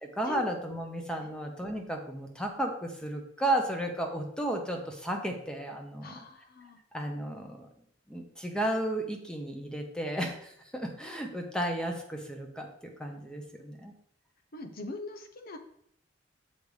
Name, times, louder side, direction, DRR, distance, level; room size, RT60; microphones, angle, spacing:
voice 1, 0.0-6.1 6.9-7.7 8.1-13.9, right 1 dB, 5° left, 3 dB, 0.9 m, -33 dB
voice 2, 6.0-6.8 14.5-15.6, left 3 dB, 50° left, 7 dB, 0.8 m, -42 dB
6.7 x 4.0 x 4.9 m, 0.69 s
head